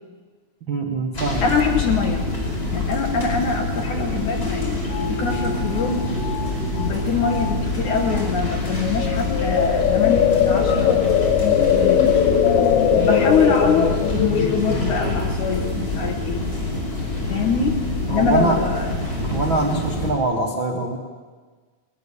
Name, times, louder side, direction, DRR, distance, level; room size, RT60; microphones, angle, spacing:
voice 1, 0.7-1.5 18.1-18.6 19.2-21.0, right 3 dB, 70° right, 2 dB, 1.1 m, -23 dB
sound 1, 1.1-20.1, left 2 dB, 15° left, 4.5 m, -26 dB
voice 2, 1.4-2.3 2.7-4.8 5.1-6.1 6.7-11.3 11.7-12.2 12.9-16.4 17.3-17.8 18.1-18.9, left 6 dB, 70° left, 3 dB, 2.0 m, -24 dB
sound 2, 4.2-4.3 4.4-7.0 7.2-7.5 7.9-8.4 8.8-15.7, left 8 dB, 85° left, 3.6 m, -21 dB
20.5 x 19.5 x 7.1 m, 1.4 s
omnidirectional pair, 4.9 m